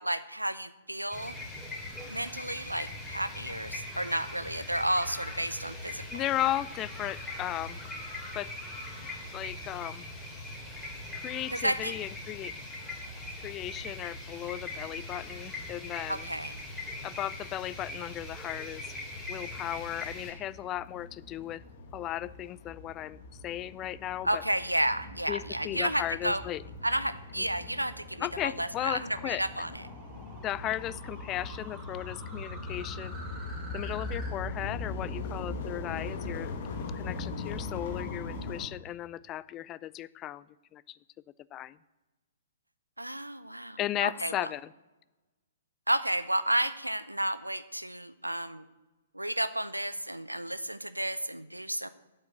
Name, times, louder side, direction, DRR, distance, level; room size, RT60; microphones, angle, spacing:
voice 1, 0.0-1.4 2.1-6.0 11.5-11.9 16.1-16.6 24.2-26.4 26.8-29.7 43.0-44.5 45.9-48.6 49.1-51.9, right 1 dB, 85° right, 14 dB, 0.6 m, -32 dB
sound 1, 1.1-20.3, left 2 dB, 5° left, 2.9 m, -41 dB
voice 2, 6.1-7.8 8.3-8.5 9.3-10.1 11.1-12.5 13.4-16.3 17.0-18.8 19.3-21.6 21.9-24.4 25.3-26.6 28.2-29.4 30.4-33.1 33.7-36.5 36.9-40.5 40.7-41.0 41.5-41.8 43.8-44.7, left 13 dB, 25° left, 19 dB, 0.3 m, -36 dB
sound 2, 19.3-38.7, left 3 dB, 45° left, 1.5 m, -41 dB
sound 3, 26.7-34.3, right 2 dB, 15° right, 2.5 m, -50 dB
8.8 x 8.0 x 7.7 m, 1.1 s
figure-of-eight pair, 120°, 0 cm